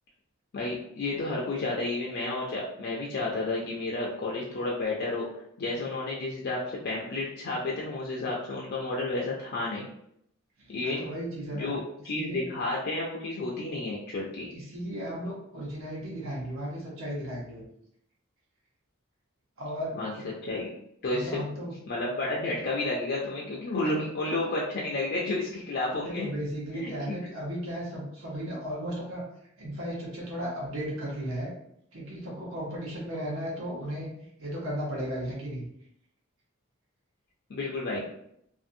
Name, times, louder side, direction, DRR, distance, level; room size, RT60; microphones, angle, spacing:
voice 1, 0.5-5.3 5.6-9.9 10.7-11.0 11.5-14.5 19.9-20.1 20.4-20.7 21.0-21.4 21.9-26.3 26.7-27.1 37.5-38.0, left 2 dB, 50° left, -4 dB, 0.4 m, -31 dB
voice 2, 10.6-11.8 12.1-12.5 14.5-17.7 19.6-19.9 21.1-21.7 25.9-29.2 29.6-31.5 31.9-34.1 34.4-35.6, equal, 85° right, -4 dB, 1.0 m, -35 dB
2.6 x 2.5 x 2.5 m, 0.73 s
head